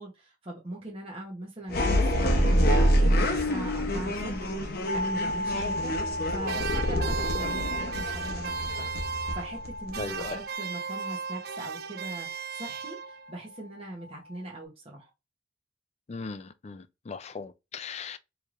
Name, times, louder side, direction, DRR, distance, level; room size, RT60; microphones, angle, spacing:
voice 1, 0.0-6.0 6.3-15.1, right 1 dB, 30° right, 0.9 m, -41 dB
sound 1, 1.7-10.3, equal, 50° left, 0.8 m, -27 dB
sound 2, 4.9-14.6, left 1 dB, 90° left, 0.9 m, -37 dB
sound 3, 6.4-9.7 9.9-13.3, right 7 dB, 50° right, 0.3 m, -36 dB
voice 2, 10.0-10.4 16.1-18.2, left 4 dB, 35° left, 0.3 m, -38 dB
4.5 x 3.2 x 2.5 m
head